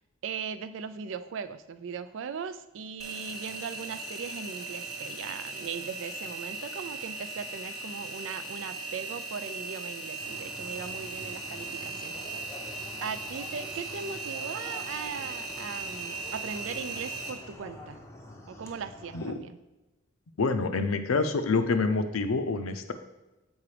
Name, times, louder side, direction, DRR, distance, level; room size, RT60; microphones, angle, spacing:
voice 1, 0.2-12.2 13.0-18.0 18.5-19.6, right 6 dB, 65° right, 12 dB, 0.3 m, -39 dB
Engine, 3.0-17.3, right 3 dB, ahead, 1.0 m, -38 dB
sound 1, 10.2-19.3, left 1 dB, 15° left, 0.6 m, -47 dB
voice 2, 20.4-22.9, left 4 dB, 85° left, 8 dB, 0.6 m, -27 dB
7.2 x 4.8 x 3.3 m, 1.0 s
head